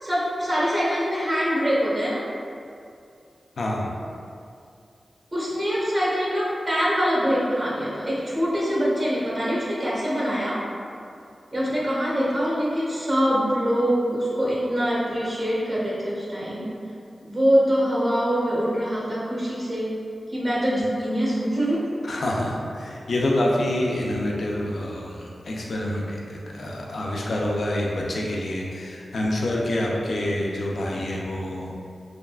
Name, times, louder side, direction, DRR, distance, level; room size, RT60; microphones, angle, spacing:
voice 1, 0.0-2.2 5.3-10.6 11.5-16.7 17.2-19.9 20.3-21.8, equal, 40° right, -7 dB, 1.1 m, -24 dB
voice 2, 3.6-3.9 22.0-31.7, left 1 dB, 75° left, -2 dB, 0.4 m, -27 dB
3.5 x 2.2 x 2.3 m, 2.4 s
cardioid pair, 55°, 0 cm